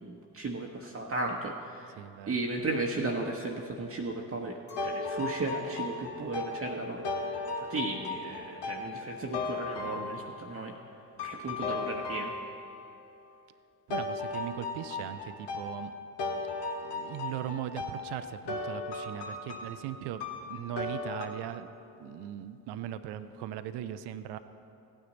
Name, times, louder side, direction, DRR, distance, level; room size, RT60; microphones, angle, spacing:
voice 1, 0.0-2.0 2.3-10.8 11.2-12.3, right 2 dB, 30° right, -1 dB, 1.1 m, -35 dB
voice 2, 2.0-2.4 13.9-15.9 16.8-21.7 22.0-24.4, right 11 dB, 55° right, 11 dB, 0.7 m, -39 dB
Chink clink, 4.7-10.2, left 1 dB, 80° left, 1.5 m, -45 dB
sound 1, 4.8-10.5 11.2-12.8 13.9-21.3, left 3 dB, 60° left, 1.4 m, -36 dB
16.0 x 9.6 x 4.0 m, 2.7 s
hypercardioid pair, 45°, 48 cm